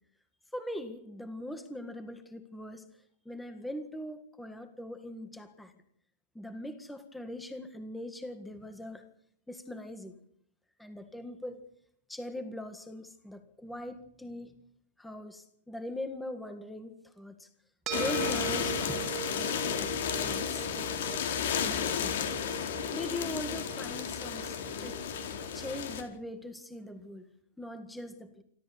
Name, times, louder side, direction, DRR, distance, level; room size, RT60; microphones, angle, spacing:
voice 1, 0.5-2.8 3.3-5.7 6.4-9.0 9.5-10.1 10.8-11.6 12.1-14.5 15.0-17.5 17.9-20.9 21.6-22.3 22.9-25.0 25.5-27.2 27.6-28.4, left 1 dB, 5° left, 8 dB, 1.7 m, -41 dB
sound 1, 17.9-26.0, left 8 dB, 65° left, 4.3 m, -33 dB
sound 2, 17.9-26.5, right 15 dB, 25° right, 2.2 m, -42 dB
27.5 x 13.5 x 8.3 m, 0.68 s
supercardioid pair, 155°, 0 cm